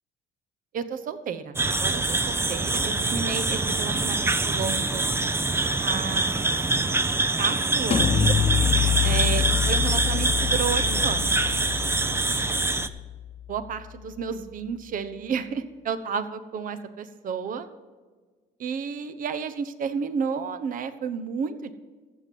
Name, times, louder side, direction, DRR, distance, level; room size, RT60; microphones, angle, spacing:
voice 1, 0.7-5.1 5.8-6.6 7.4-8.4 9.0-11.4 13.5-17.7 18.6-21.7, right 6 dB, 55° right, 11 dB, 1.0 m, -32 dB
sound 1, 1.6-12.9, right 3 dB, 15° right, 0.6 m, -25 dB
sound 2, 7.9-13.5, left 7 dB, 35° left, 1.0 m, -26 dB
14.5 x 7.6 x 5.4 m, 1.4 s
cardioid pair, 110°, 17 cm